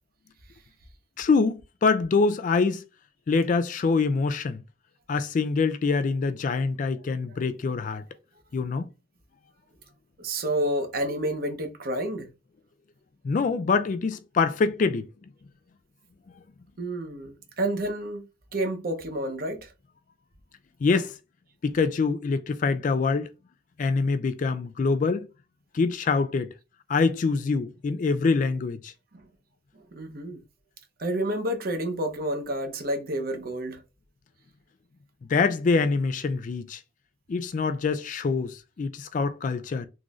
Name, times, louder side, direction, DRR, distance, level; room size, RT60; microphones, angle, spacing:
voice 1, 1.2-2.8 3.3-4.6 5.1-8.0 8.5-8.8 13.2-15.0 20.8-21.1 21.6-23.3 23.8-25.3 25.7-26.5 26.9-28.9 35.3-36.8 37.3-39.9, left 4 dB, 40° left, 0.3 m, -25 dB
voice 2, 10.2-12.3 16.8-18.2 18.5-19.7 29.1-29.2 29.9-30.4 31.0-33.8, right 1 dB, 50° right, 0.8 m, -29 dB
3.7 x 3.0 x 2.4 m
head